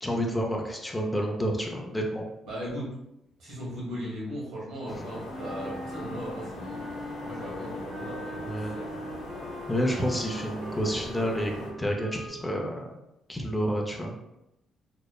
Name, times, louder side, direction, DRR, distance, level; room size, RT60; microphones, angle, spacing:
voice 1, 0.0-2.3 8.4-8.7 9.7-12.9 13.3-14.1, equal, 10° left, 0 dB, 0.4 m, -29 dB
voice 2, 2.5-2.9 3.4-9.1, equal, 80° right, -6 dB, 1.4 m, -38 dB
sound 1, 4.9-11.7, left 1 dB, 80° left, 0.7 m, -41 dB
Wind instrument woodwind instrument, 5.3-12.3, equal, 55° right, 0.5 m, -41 dB
2.9 x 2.1 x 2.2 m, 0.88 s
cardioid pair, 90°, 0 cm